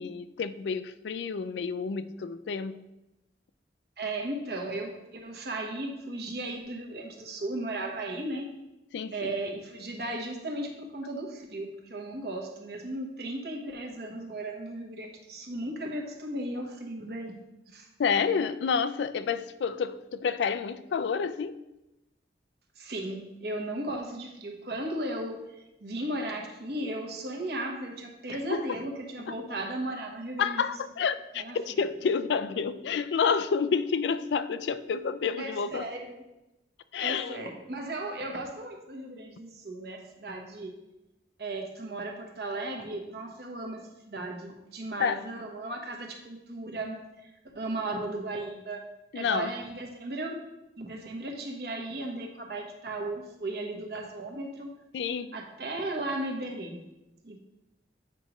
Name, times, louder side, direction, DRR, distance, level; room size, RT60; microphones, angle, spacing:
voice 1, 0.0-2.8 8.9-9.3 18.0-21.6 28.5-28.8 29.3-29.4 30.4-35.8 36.9-37.4 45.0-45.2 49.1-49.5 54.9-55.4, left 6 dB, 80° left, 0.3 m, -29 dB
voice 2, 4.0-8.5 9.1-17.9 22.8-30.6 31.4-31.6 35.4-36.2 37.0-40.8 41.4-48.9 49.1-50.4 50.8-54.7 55.3-56.8 57.2-57.4, right 1 dB, 60° right, 1.1 m, -36 dB
8.3 x 5.1 x 3.0 m
head